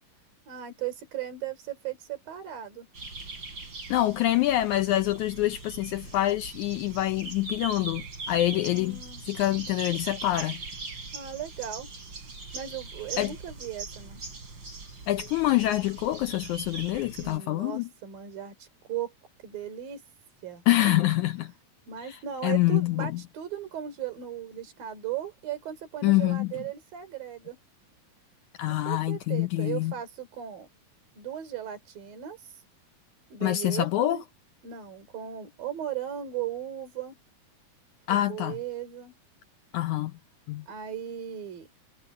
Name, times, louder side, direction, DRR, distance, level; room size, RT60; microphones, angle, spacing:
voice 1, 0.5-2.9 8.6-9.2 11.1-11.9 12.5-14.2 17.2-19.1 19.4-20.1 20.4-21.1 21.9-27.6 28.7-30.7 31.1-32.6 33.3-34.2 34.6-37.2 38.1-39.1 40.7-41.7, right 10 dB, 90° right, 5.3 m, -37 dB
sound 1, 2.9-17.4, right 3 dB, 35° right, 4.4 m, -41 dB
voice 2, 3.9-10.6 13.2-13.3 15.1-17.9 20.7-21.5 22.0-23.2 26.0-26.5 28.6-29.9 33.4-34.2 38.1-38.6 39.7-40.1 40.5-40.7, left 15 dB, 80° left, 1.8 m, -26 dB
omnidirectional pair, 3.9 m